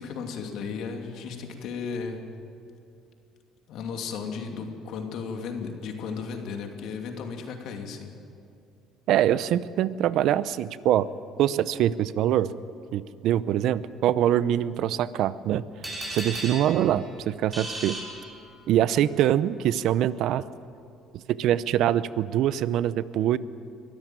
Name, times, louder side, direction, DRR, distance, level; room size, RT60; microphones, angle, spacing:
voice 1, 0.0-2.2 3.7-8.1, left 5 dB, 70° left, 3 dB, 2.7 m, -35 dB
voice 2, 9.1-11.1 11.4-12.5 12.9-15.6 16.1-18.0 18.7-20.4 21.1-23.4, right 11 dB, 70° right, 16 dB, 0.7 m, -24 dB
sound 1, 15.8-18.8, right 1 dB, 20° right, 6.9 m, -37 dB
22.5 x 13.5 x 9.2 m, 2.6 s
cardioid pair, 100°, 0 cm